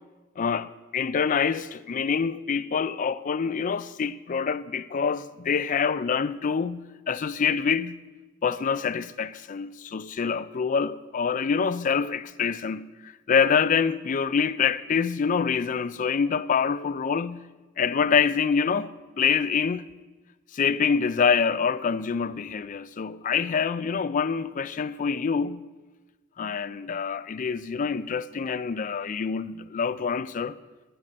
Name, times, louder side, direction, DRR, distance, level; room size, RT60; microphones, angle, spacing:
voice 1, 0.4-8.0 8.4-17.5 17.8-19.9 20.5-25.6 26.4-30.6, left 6 dB, 40° left, 0.4 m, -26 dB
12.0 x 8.5 x 6.7 m
head